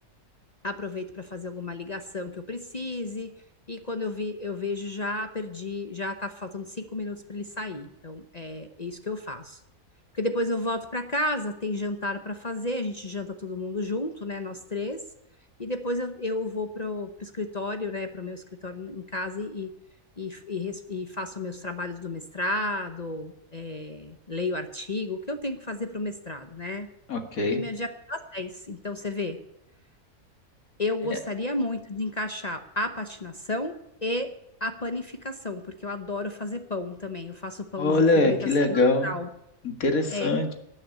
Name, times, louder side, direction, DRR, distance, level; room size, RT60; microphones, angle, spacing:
voice 1, 0.6-3.3 3.7-9.6 10.1-15.0 15.6-19.7 20.2-26.9 27.5-29.4 30.8-34.3 34.6-38.4 38.7-39.3 40.1-40.3, left 2 dB, 35° left, 7 dB, 0.8 m, -32 dB
voice 2, 27.1-27.6 37.8-39.1 39.6-40.5, left 2 dB, 65° left, 6 dB, 2.2 m, -23 dB
18.5 x 6.7 x 8.3 m, 0.82 s
omnidirectional pair, 1.6 m